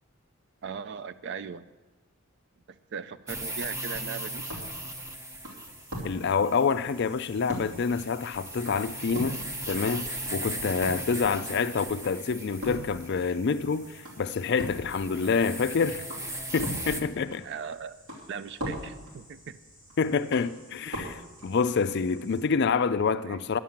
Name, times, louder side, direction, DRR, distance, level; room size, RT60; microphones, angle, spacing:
voice 1, 0.6-1.7 2.7-4.5 11.3-11.6 17.4-18.0 18.3-19.6 23.2-23.4, right 6 dB, 50° right, 0.4 m, -39 dB
sound 1, 3.3-17.0, right 1 dB, 15° right, 0.7 m, -38 dB
sound 2, 4.2-22.4, equal, 70° right, 2.9 m, -43 dB
voice 2, 6.0-16.0 16.5-17.4 20.0-23.6, left 5 dB, 50° left, 0.4 m, -27 dB
10.5 x 7.5 x 7.2 m
head